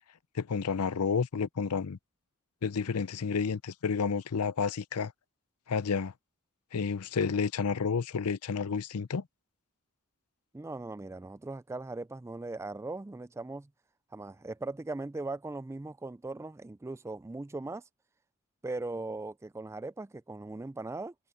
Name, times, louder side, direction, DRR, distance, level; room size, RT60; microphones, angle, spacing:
voice 1, 0.3-2.0 2.6-5.1 5.7-6.1 6.7-9.3, left 5 dB, 90° left, 0.6 m, -30 dB
voice 2, 10.5-13.7 14.1-17.8 18.6-21.1, right 2 dB, 10° right, 0.3 m, -39 dB
head